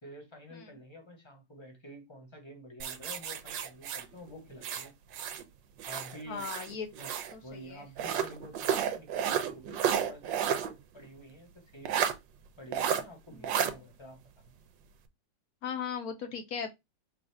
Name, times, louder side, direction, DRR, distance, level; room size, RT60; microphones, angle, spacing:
voice 1, 0.0-4.9 5.9-6.5 7.0-12.0 12.6-14.5, equal, 20° left, 0.8 m, -49 dB
sound 1, 2.8-5.4 5.8-7.3 8.0-10.7 11.0-11.1 11.9-12.1 12.7-13.0 13.4-13.7, right 8 dB, 85° right, 1.3 m, -31 dB
voice 2, 6.3-6.9 7.3-7.8 15.6-16.7, left 6 dB, 70° left, 1.0 m, -37 dB
3.9 x 2.5 x 4.6 m
omnidirectional pair, 2.0 m